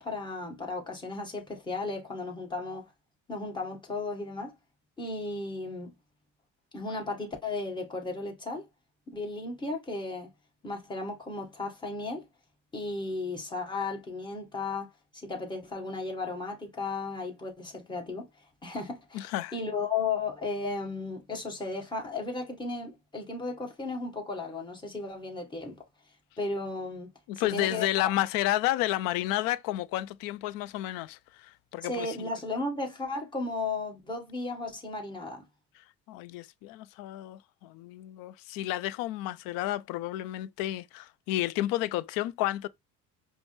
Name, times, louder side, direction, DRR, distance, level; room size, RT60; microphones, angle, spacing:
voice 1, 0.0-2.9 3.3-4.6 5.0-5.9 6.7-8.7 9.1-10.3 10.6-12.3 12.7-18.3 18.6-25.8 26.4-27.1 27.4-28.1 31.9-35.4, left 3 dB, 15° left, 1.5 m, -35 dB
voice 2, 19.1-19.5 27.3-32.3 35.8-42.7, left 15 dB, 75° left, 0.5 m, -31 dB
5.2 x 2.1 x 3.2 m
cardioid pair, 110°, 34 cm